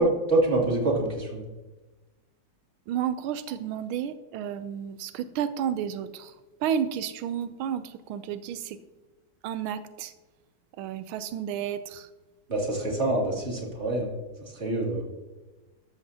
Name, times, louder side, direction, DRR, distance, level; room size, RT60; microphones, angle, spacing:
voice 1, 0.0-1.4 12.5-14.1 14.5-15.0, right 2 dB, 35° right, -2 dB, 2.8 m, -26 dB
voice 2, 2.9-6.3 6.6-8.8 9.4-10.1 10.8-12.1, right 9 dB, 90° right, 12 dB, 1.5 m, -31 dB
13.5 x 13.0 x 2.8 m, 1.2 s
omnidirectional pair, 2.2 m